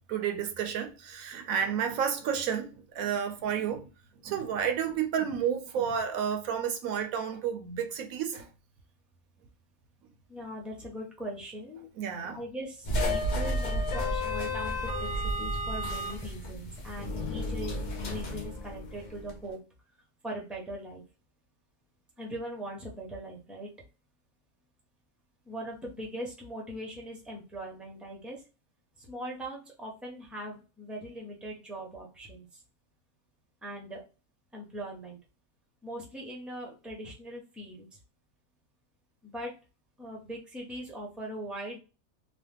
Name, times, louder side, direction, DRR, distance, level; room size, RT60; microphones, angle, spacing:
voice 1, 0.1-3.9 4.2-8.5 12.0-12.4, right 8 dB, 75° right, 1.0 m, -31 dB
voice 2, 10.3-11.9 12.3-19.6 20.2-21.0 22.2-23.7 25.5-28.4 29.0-32.6 33.6-34.0 34.5-35.2 35.8-37.9 39.2-39.5 40.0-41.8, right 1 dB, ahead, 0.5 m, -40 dB
sound 1, 12.8-19.4, left 1 dB, 60° left, 0.5 m, -32 dB
2.9 x 2.2 x 3.4 m
omnidirectional pair, 1.5 m